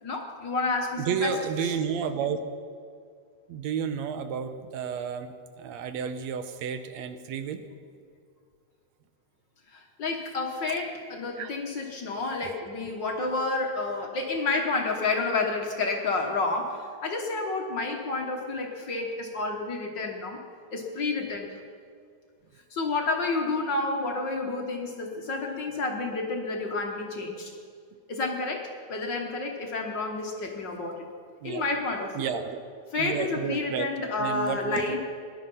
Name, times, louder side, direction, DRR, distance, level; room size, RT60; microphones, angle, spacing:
voice 1, 0.0-1.3 9.7-20.4 20.7-21.6 22.7-27.5 28.1-31.0 31.4-32.3 32.9-35.0, left 3 dB, 50° left, 2 dB, 1.6 m, -30 dB
voice 2, 1.0-2.4 3.5-7.6 11.4-11.5 31.4-31.7 32.2-33.9 34.2-35.0, right 7 dB, 75° right, 9 dB, 1.9 m, -31 dB
19.0 x 11.5 x 5.5 m, 2.2 s
omnidirectional pair, 3.3 m